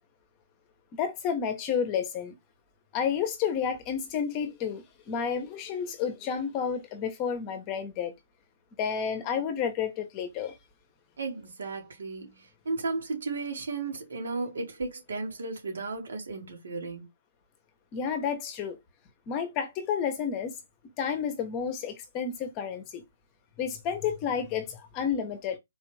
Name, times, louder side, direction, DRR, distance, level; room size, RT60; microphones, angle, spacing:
voice 1, 1.0-2.3 2.9-8.1 8.8-10.6 17.9-18.8 19.3-20.6 21.0-23.0 23.6-25.6, left 7 dB, 25° left, 0.8 m, -31 dB
voice 2, 11.2-17.1, right 3 dB, 85° right, 1.7 m, -34 dB
4.0 x 2.5 x 3.2 m
hypercardioid pair, 160°, 0 cm